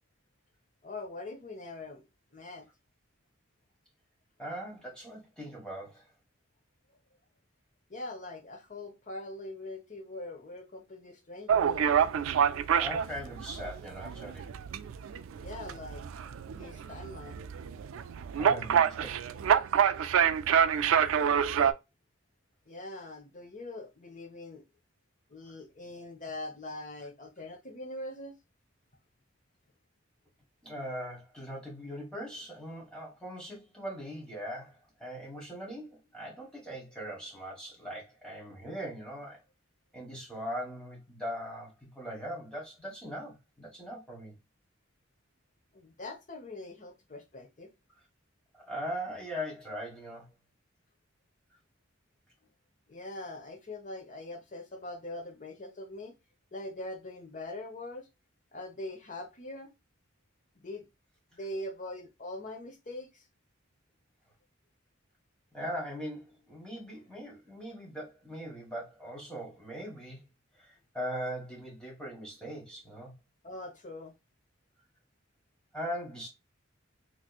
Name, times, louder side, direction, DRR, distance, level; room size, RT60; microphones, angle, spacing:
voice 1, 0.8-2.0 2.3-2.7 7.9-11.7 15.3-16.1 16.5-17.4 22.7-24.6 25.3-28.3 45.7-47.7 52.9-56.1 56.5-58.1 58.5-59.7 60.5-60.9 61.3-63.3 66.9-67.0 73.4-74.1, left 2 dB, 40° left, 0.9 m, -42 dB
voice 2, 4.4-6.1 12.8-14.5 18.3-19.2 30.6-39.4 39.9-44.3 48.5-50.2 65.5-70.2 70.6-73.1 75.7-76.3, equal, 5° left, 1.5 m, -40 dB
sound 1, 11.5-21.7, right 8 dB, 85° right, 0.3 m, -27 dB
3.3 x 3.0 x 2.3 m
head